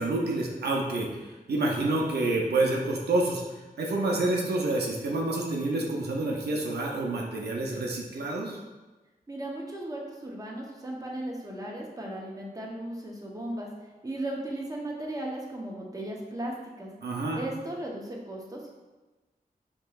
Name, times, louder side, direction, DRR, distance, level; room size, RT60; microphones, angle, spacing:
voice 1, 0.0-3.4 3.8-8.6 17.0-17.4, right 2 dB, 90° right, -1 dB, 0.5 m, -28 dB
voice 2, 9.3-13.7 14.0-16.9 17.3-18.7, right 1 dB, 20° right, -2 dB, 0.8 m, -36 dB
4.4 x 3.0 x 2.4 m, 1.2 s
cardioid pair, 55°, 16 cm